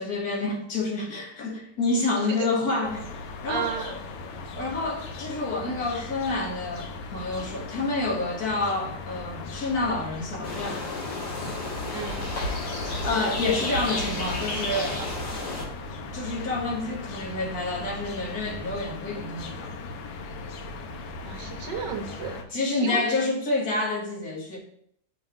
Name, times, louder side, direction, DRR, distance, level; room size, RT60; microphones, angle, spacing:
voice 1, 0.0-3.1 3.4-3.7 4.6-10.9 13.0-15.0 16.1-19.7 22.5-24.6, left 2 dB, 50° left, 1.7 m, -28 dB
voice 2, 2.3-2.9 3.5-3.9 11.9-12.3 15.4-15.6 21.2-23.1, right 6 dB, 60° right, 1.5 m, -34 dB
sound 1, 2.8-22.4, left 3 dB, 70° left, 1.4 m, -38 dB
sound 2, 10.4-15.6, left 2 dB, 90° left, 2.7 m, -31 dB
5.2 x 3.7 x 5.6 m
omnidirectional pair, 2.4 m